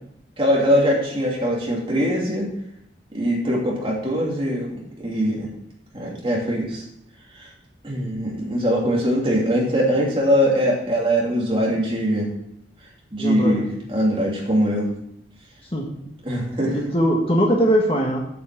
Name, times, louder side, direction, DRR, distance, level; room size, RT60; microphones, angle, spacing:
voice 1, 0.4-2.5 3.1-4.7 5.0-5.5 5.9-6.8 7.8-12.3 13.1-13.6 13.9-14.9 16.2-16.8, equal, 30° right, -3 dB, 2.7 m, -21 dB
voice 2, 13.2-13.6 15.7-15.9 16.7-18.2, equal, 30° left, -1 dB, 1.5 m, -20 dB
8.3 x 5.9 x 7.5 m, 0.74 s
head